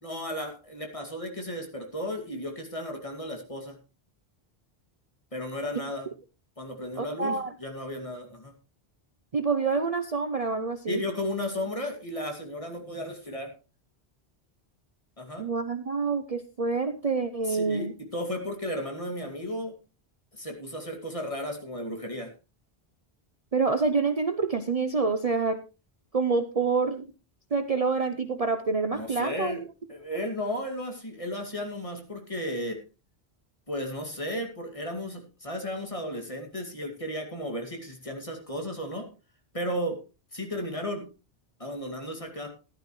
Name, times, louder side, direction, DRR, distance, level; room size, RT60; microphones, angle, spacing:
voice 1, 0.0-3.8 5.3-6.1 6.6-8.5 10.9-13.5 15.2-15.5 17.4-19.7 20.3-22.3 28.9-29.6 29.9-32.8 33.7-39.1 39.5-40.0 40.3-41.1 41.6-42.5, left 1 dB, 30° left, 2 dB, 2.5 m, -34 dB
voice 2, 7.0-7.5 9.3-11.0 15.4-17.9 23.5-25.6 26.1-27.1 27.5-29.7, right 4 dB, 40° right, 8 dB, 0.7 m, -27 dB
15.0 x 11.5 x 3.2 m, 0.31 s
omnidirectional pair, 1.1 m